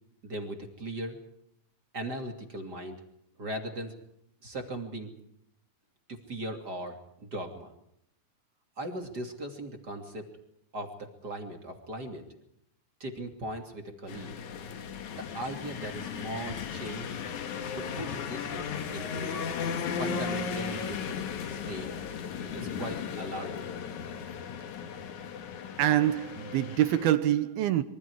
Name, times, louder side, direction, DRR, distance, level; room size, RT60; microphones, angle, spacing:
voice 1, 0.2-1.2 1.9-3.0 3.4-4.0 4.4-5.1 6.1-7.7 8.8-10.3 10.7-12.2 13.0-14.3 15.1-17.2 17.7-19.4 20.0-21.2 21.5-21.9 22.5-23.7, right 1 dB, 25° right, 2.6 m, -38 dB
sound 1, 14.1-27.1, left 6 dB, 60° left, 2.3 m, -36 dB
voice 2, 25.8-27.8, right 12 dB, 75° right, 2.6 m, -25 dB
26.5 x 24.0 x 4.8 m
omnidirectional pair, 5.1 m